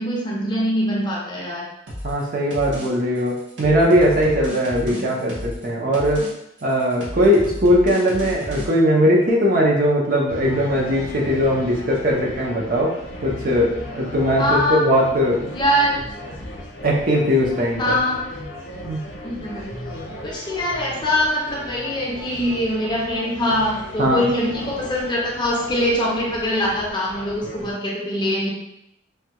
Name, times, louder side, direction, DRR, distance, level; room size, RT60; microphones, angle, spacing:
voice 1, 0.0-1.7 4.9-5.3 14.4-14.9 15.5-16.0 17.8-18.2 19.2-19.7 20.2-28.5, equal, 25° left, -3 dB, 0.5 m, -23 dB
sound 1, 1.9-2.2 2.5-2.9 3.2-5.6 5.9-6.3 6.6-8.7, equal, 70° right, 0.9 m, -32 dB
voice 2, 2.0-6.3 6.6-12.9 13.2-15.5 16.8-18.0 18.9-19.0 24.0-24.3, equal, 45° right, -2 dB, 0.6 m, -19 dB
sound 2, 10.3-27.7, left 1 dB, 70° left, 0.7 m, -36 dB
3.2 x 2.2 x 2.8 m, 0.79 s
head